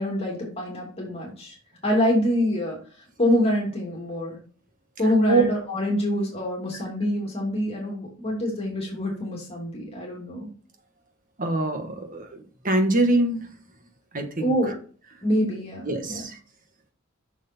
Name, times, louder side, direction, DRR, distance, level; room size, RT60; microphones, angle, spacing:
voice 1, 0.0-1.6 1.8-4.4 5.0-10.5 14.4-14.7 15.2-16.2, left 1 dB, 30° left, -2 dB, 2.7 m, -25 dB
voice 2, 11.4-13.5 14.1-14.5 15.9-16.4, right 2 dB, 40° right, 5 dB, 1.6 m, -24 dB
7.4 x 6.6 x 4.4 m, 0.40 s
head